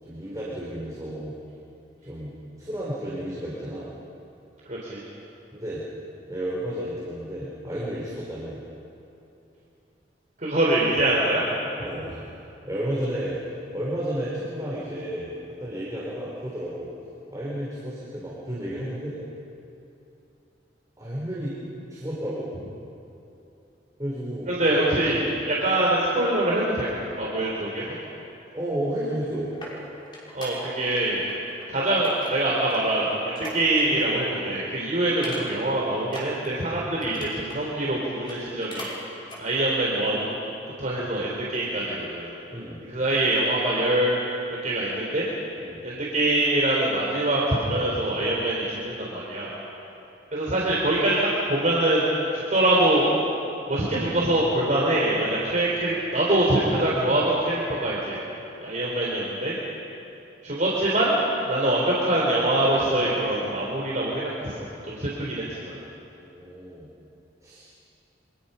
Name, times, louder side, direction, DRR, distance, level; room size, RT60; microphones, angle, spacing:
voice 1, 0.0-1.3 2.0-3.9 5.5-5.8 6.3-8.6 11.8-12.2 12.6-13.4 13.7-16.9 17.3-19.2 21.0-21.6 21.9-22.5 24.0-25.0 28.5-29.5 42.5-42.8 45.6-45.8 66.2-66.9 67.4-67.7, equal, 20° right, -7 dB, 4.0 m, -32 dB
voice 2, 4.7-5.0 10.4-11.5 24.5-27.8 30.3-31.3 31.7-38.9 39.4-40.3 40.8-42.3 42.9-44.2 44.6-45.3 45.8-49.5 50.3-51.2 51.5-52.1 52.3-53.1 53.7-58.2 58.6-59.5 60.4-61.2 61.5-64.6 64.8-65.8, right 1 dB, 45° right, -5 dB, 3.8 m, -24 dB
sound 1, 29.1-31.0 31.3-31.7 32.0-34.2 34.5-34.7 35.1-35.7 36.0-37.6 38.1-39.0 39.2-39.4 39.9-40.0, left 1 dB, 25° left, 5.6 m, -41 dB
29.0 x 25.0 x 5.7 m, 2.9 s
head